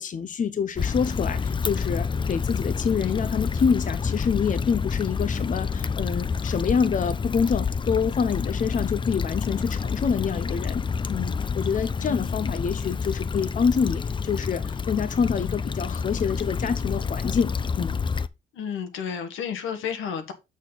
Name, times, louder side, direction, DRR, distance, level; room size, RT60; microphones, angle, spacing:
voice 1, 0.0-18.0, left 6 dB, 40° left, 0.8 m, -26 dB
Stream / Traffic noise roadway noise / Trickle dribble, 0.8-18.3, left 5 dB, 25° left, 0.5 m, -28 dB
voice 2, 18.5-20.3, left 7 dB, 85° left, 1.5 m, -31 dB
6.5 x 6.3 x 4.0 m
cardioid pair, 90°, 20 cm